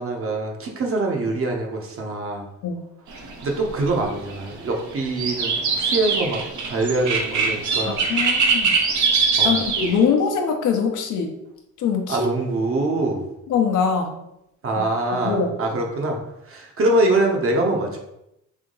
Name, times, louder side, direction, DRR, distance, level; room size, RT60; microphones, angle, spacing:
voice 1, 0.0-2.5 3.4-5.5 5.8-8.1 9.4-9.6 12.1-13.3 14.6-16.2 16.5-18.0, right 2 dB, 45° right, 1 dB, 0.9 m, -24 dB
sound 1, 3.1-10.0, right 4 dB, 75° right, 0.9 m, -22 dB
voice 2, 7.9-8.7 9.4-11.3 11.8-12.3 13.5-14.2 14.7-14.8 15.2-15.5, left 6 dB, 80° left, 2 dB, 0.8 m, -22 dB
3.6 x 2.7 x 3.8 m, 0.83 s
cardioid pair, 90°, 30 cm